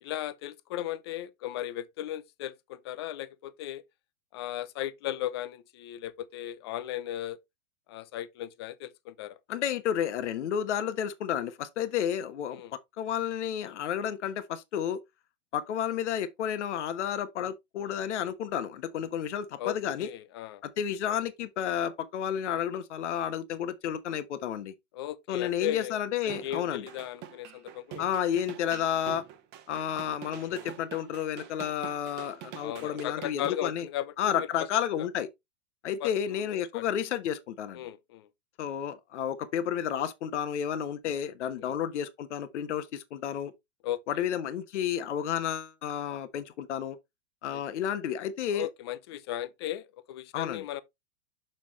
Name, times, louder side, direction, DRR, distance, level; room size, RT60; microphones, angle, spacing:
voice 1, 0.0-3.8 4.3-7.4 7.9-9.4 12.5-12.7 19.6-19.7 20.0-20.6 24.9-26.0 26.2-28.1 30.4-30.6 32.6-34.5 35.0-35.1 36.0-36.8 37.7-38.3 41.6-41.7 43.8-44.2 47.5-47.6 48.5-50.8, left 13 dB, 25° left, 0.3 m, -36 dB
voice 2, 9.5-12.6 13.0-15.0 15.5-20.1 20.6-24.7 25.3-26.8 28.0-29.2 29.7-33.9 34.2-35.3 35.8-37.8 38.6-43.5 44.1-47.0 47.4-48.7 50.3-50.6, left 9 dB, 65° left, 1.2 m, -31 dB
sound 1, 26.2-33.6, right 10 dB, 25° right, 0.9 m, -45 dB
6.6 x 5.7 x 3.1 m
hypercardioid pair, 135°, 38 cm